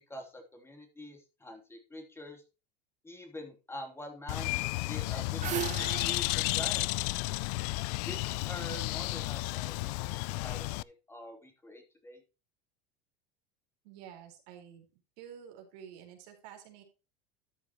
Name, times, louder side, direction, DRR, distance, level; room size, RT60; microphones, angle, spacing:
voice 1, 0.1-2.4 3.0-6.9 8.1-10.1 10.4-12.2, left 1 dB, 10° left, 3 dB, 3.1 m, -45 dB
Bird, 4.3-10.8, left 23 dB, 70° left, 0.4 m, -33 dB
sound 1, 4.9-8.1, right 12 dB, 35° right, 0.6 m, -39 dB
voice 2, 13.8-14.8 15.2-16.8, right 9 dB, 75° right, 3 dB, 4.4 m, -50 dB
13.0 x 8.4 x 3.0 m, 0.32 s
supercardioid pair, 110°, 21 cm